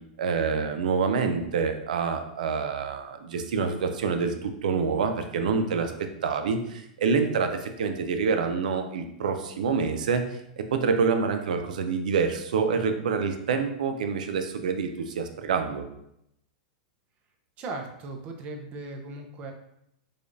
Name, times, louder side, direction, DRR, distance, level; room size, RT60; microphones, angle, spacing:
voice 1, 0.2-5.9 6.2-10.2 10.6-15.8, right 5 dB, 85° right, 6 dB, 0.5 m, -27 dB
voice 2, 17.6-19.5, right 2 dB, 35° right, 3 dB, 0.6 m, -37 dB
4.9 x 2.4 x 2.6 m, 0.79 s
hypercardioid pair, 135°, 4 cm